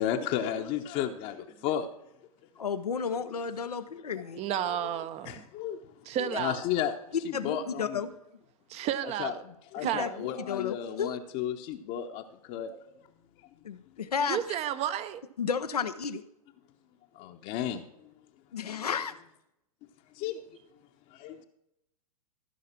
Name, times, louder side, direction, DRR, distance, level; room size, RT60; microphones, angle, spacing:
voice 1, 0.0-1.9 3.5-3.6 4.5-5.0 5.2-5.8 6.2-6.9 7.2-8.0 9.2-12.9 17.1-17.8 18.7-18.8 20.1-20.4 21.1-21.4, left 10 dB, 45° left, 0.9 m, -33 dB
voice 2, 2.6-4.4 6.2-6.4 7.3-8.1 9.8-11.2 13.6-14.4 15.4-16.2 18.5-19.1, left 6 dB, 90° left, 0.7 m, -33 dB
voice 3, 4.4-5.4 6.1-6.6 8.7-9.4 9.8-10.2 14.3-15.2, right 11 dB, 35° right, 0.8 m, -32 dB
14.5 x 5.7 x 6.0 m
hypercardioid pair, 105°, 19 cm